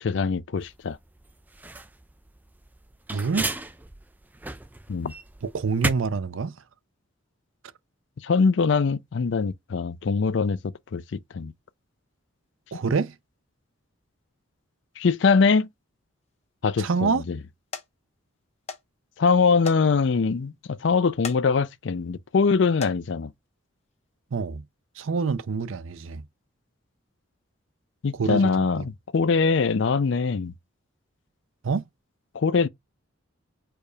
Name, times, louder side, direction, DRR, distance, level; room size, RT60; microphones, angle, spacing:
voice 1, 0.0-1.0 4.9-5.1 8.2-10.6 10.9-11.5 15.0-15.7 16.6-17.4 19.2-23.3 28.0-30.5 32.3-32.7, left 5 dB, 60° left, 0.4 m, -23 dB
sound 1, 0.6-5.9, right 2 dB, 10° right, 0.3 m, -34 dB
voice 2, 3.1-3.5 5.4-6.6 12.7-13.2 16.8-17.2 24.3-24.6 25.0-26.2 28.1-28.8 31.6-31.8, right 4 dB, 70° right, 0.5 m, -26 dB
sound 2, 16.3-16.7 17.2-17.4 17.7-17.9 18.7-18.8 19.1-19.2 19.6-19.8 20.2-20.3 21.1-21.4 21.9-22.2 22.6-23.0 23.9-24.1 24.5-24.6, left 5 dB, 30° left, 0.8 m, -37 dB
4.6 x 2.3 x 4.9 m
head